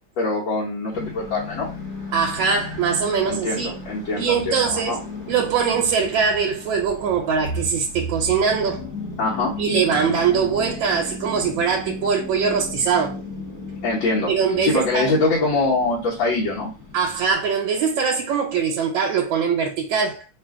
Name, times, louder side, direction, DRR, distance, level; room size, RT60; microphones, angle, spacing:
voice 1, 0.2-1.7 3.3-5.0 9.2-9.6 13.8-14.3 14.6-16.7, left 3 dB, 85° left, 1.7 m, -23 dB
sound 1, 0.9-17.3, left 4 dB, 45° left, 1.3 m, -36 dB
voice 2, 2.1-3.7 4.2-5.0 5.3-8.9 9.6-13.2 14.3-15.1 16.9-20.3, right 6 dB, 85° right, 1.5 m, -22 dB
3.6 x 2.5 x 3.5 m
omnidirectional pair, 2.0 m